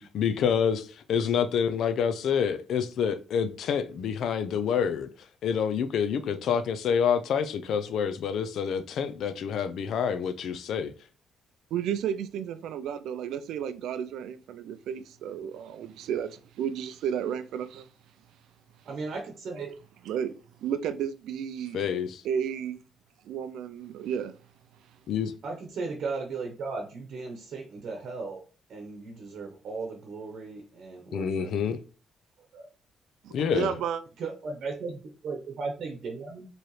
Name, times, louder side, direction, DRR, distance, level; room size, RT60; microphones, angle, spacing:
voice 1, 0.1-5.1 5.4-10.9 21.7-22.2 25.1-25.3 31.1-31.8 33.3-33.7, left 7 dB, 70° left, 0.4 m, -27 dB
voice 2, 11.7-17.9 20.1-20.3 20.6-21.8 22.2-22.8 23.2-24.4 33.2-34.0, right 8 dB, 80° right, 0.4 m, -32 dB
voice 3, 18.8-19.7 25.4-28.4 28.7-31.5 32.4-32.7 34.2-36.5, right 4 dB, 65° right, 0.9 m, -36 dB
4.7 x 3.1 x 3.1 m
cardioid pair, 90°, 0 cm